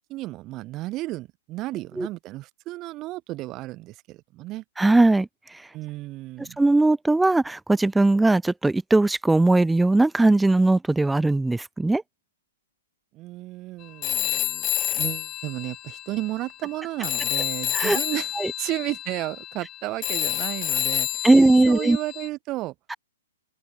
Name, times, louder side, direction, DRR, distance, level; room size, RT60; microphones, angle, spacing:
voice 1, 0.1-4.6 5.7-6.6 13.1-22.7, right 18 dB, 30° right, 4.2 m, -33 dB
voice 2, 4.8-5.3 6.4-12.0 17.7-18.0 18.4-18.5 21.2-22.0, right 2 dB, 5° right, 0.6 m, -19 dB
Telephone, 14.0-16.8 17.0-22.3, left 13 dB, 25° left, 1.7 m, -29 dB
hypercardioid pair, 125°, 0 cm